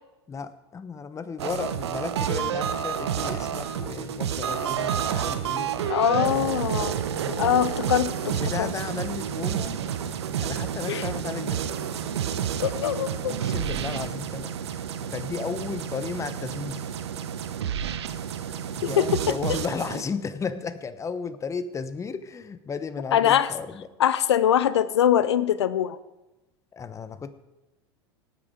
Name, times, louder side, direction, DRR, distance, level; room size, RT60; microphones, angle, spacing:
voice 1, 0.3-5.8 6.2-6.5 7.2-7.5 8.2-9.8 10.4-11.6 13.2-16.9 18.7-23.9 26.7-27.3, left 5 dB, 20° left, 12 dB, 1.0 m, -34 dB
sound 1, 1.4-20.0, right 8 dB, 80° right, 0.9 m, -30 dB
sound 2, 2.9-13.5, equal, 15° right, 1.8 m, -48 dB
voice 2, 5.9-7.0 7.4-8.7 10.9-11.1 12.6-13.3 18.8-19.4 23.1-23.5 24.0-26.0, left 10 dB, 80° left, 15 dB, 0.6 m, -23 dB
18.5 x 8.7 x 4.9 m, 1.0 s
hypercardioid pair, 90°, 14 cm